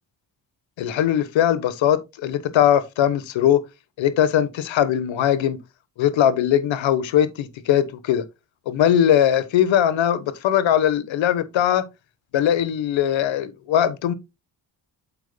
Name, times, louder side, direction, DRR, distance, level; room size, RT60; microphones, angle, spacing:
voice 1, 0.8-3.6 4.0-5.6 6.0-8.2 8.7-11.8 12.3-14.1, left 10 dB, 85° left, 1.3 m, -20 dB
8.3 x 8.1 x 2.2 m
cardioid pair, 75°, 45 cm